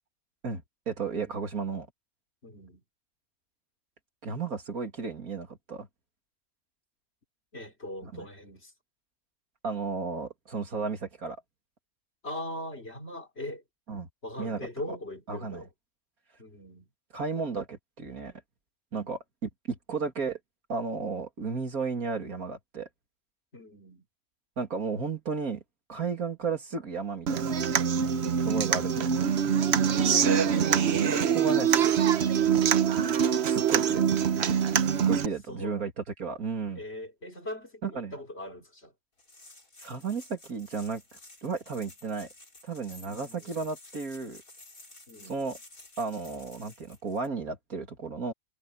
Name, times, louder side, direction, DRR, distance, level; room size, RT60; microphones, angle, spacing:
voice 1, 0.4-1.9 4.2-5.9 8.1-8.2 9.6-11.4 13.9-14.1 14.4-14.7 15.3-15.6 17.1-18.4 18.9-20.4 20.7-22.9 24.6-25.6 25.9-27.5 28.4-29.2 31.1-32.0 33.4-34.0 35.1-36.8 37.8-38.1 39.8-42.3 42.6-44.4 45.3-45.6 46.0-48.3, right 5 dB, 90° right, 3.1 m, -34 dB
voice 2, 2.4-2.8 7.5-8.7 12.2-13.6 14.2-15.7 16.4-16.9 18.9-19.1 23.5-24.1 28.2-28.7 29.9-30.9 35.5-35.8 36.7-38.9 43.1-43.6 45.1-45.4, left 1 dB, 45° left, 4.3 m, -41 dB
Human voice / Acoustic guitar, 27.3-35.3, right 7 dB, 55° right, 1.1 m, -24 dB
sound 1, 39.2-47.3, left 2 dB, 75° left, 6.3 m, -52 dB
omnidirectional pair, 1.5 m